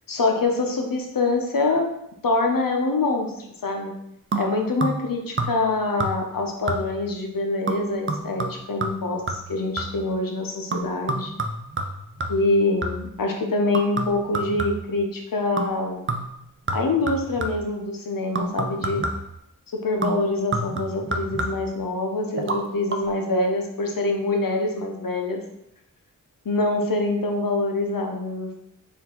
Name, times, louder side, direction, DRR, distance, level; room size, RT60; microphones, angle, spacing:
voice 1, 0.1-1.9 2.2-3.9 4.4-9.2 9.5-11.3 12.3-16.0 16.7-19.1 19.7-25.4 26.4-28.6, left 2 dB, 80° left, 2 dB, 0.8 m, -25 dB
sound 1, 4.3-5.1 5.4-5.7 6.0-6.4 6.7-7.1 7.7-10.1 10.7-13.2 13.7-15.0 15.6-15.8 16.1-17.7 18.4-19.4 20.0-21.8 22.4-22.6 22.9-23.0, right 2 dB, 35° right, 0.5 m, -29 dB
4.5 x 2.6 x 3.7 m, 0.80 s
wide cardioid pair, 55°, 34 cm